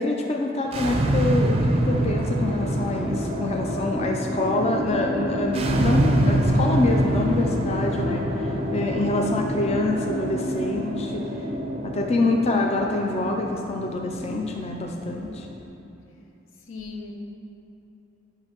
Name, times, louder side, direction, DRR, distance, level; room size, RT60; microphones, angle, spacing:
voice 1, 0.0-11.2 11.8-15.5, left 2 dB, 30° left, 1 dB, 0.4 m, -26 dB
sound 1, 0.6-15.6, right 1 dB, 30° right, 0.5 m, -26 dB
voice 2, 16.6-17.1, left 4 dB, 75° left, 2 dB, 0.8 m, -38 dB
10.5 x 5.6 x 3.0 m, 2.9 s
head